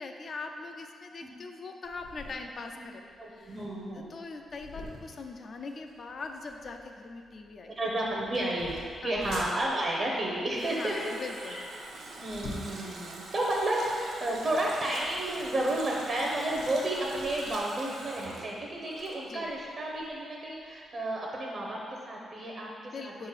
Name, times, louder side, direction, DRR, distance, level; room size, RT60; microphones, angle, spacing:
voice 1, 0.0-3.0 3.3-3.6 3.9-7.7 9.0-9.2 10.7-11.6 19.3-19.5 22.8-23.3, left 3 dB, 40° left, 4 dB, 0.4 m, -41 dB
sound 1, 1.8-17.6, left 2 dB, 70° left, 1.2 m, -49 dB
voice 2, 3.2-4.1 7.8-11.1 11.5-11.6 12.2-23.3, right 1 dB, 35° right, -2 dB, 0.7 m, -32 dB
Water tap faucet, 10.1-19.7 20.0-20.1, right 2 dB, 70° right, 0.8 m, -44 dB
4.8 x 3.8 x 5.7 m, 2.2 s
wide cardioid pair, 155°, 0 cm